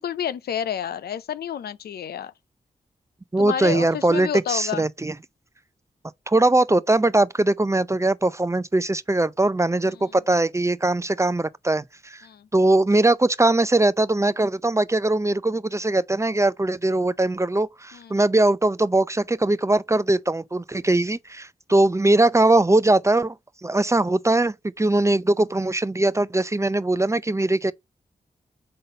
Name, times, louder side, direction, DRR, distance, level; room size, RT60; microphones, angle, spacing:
voice 1, 0.0-2.3 3.4-4.8 12.2-12.5 17.9-18.2, left 9 dB, 85° left, 0.4 m, -29 dB
voice 2, 3.3-5.1 6.3-12.3 12.5-23.4 23.6-27.7, right 2 dB, 20° right, 0.5 m, -21 dB
5.4 x 4.0 x 5.1 m
cardioid pair, 45°, 16 cm